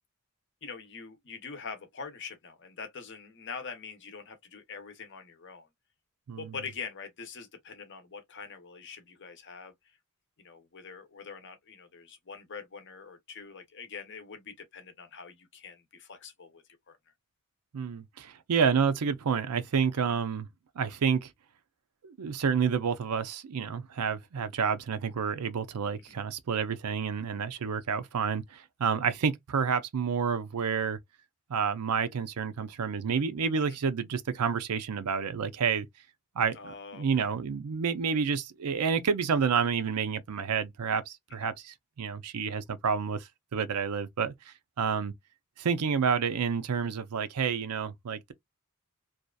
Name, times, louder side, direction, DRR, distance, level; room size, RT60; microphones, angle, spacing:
voice 1, 0.6-5.7 6.4-9.7 10.4-17.0 20.1-20.2 33.6-33.8 36.5-37.3 41.3-41.5, left 5 dB, 50° left, 0.7 m, -44 dB
voice 2, 17.7-20.5 20.8-21.3 22.0-31.0 31.5-35.9 36.4-36.6 36.9-45.1 45.6-48.3, right 6 dB, 90° right, 0.5 m, -29 dB
2.7 x 2.3 x 2.2 m
head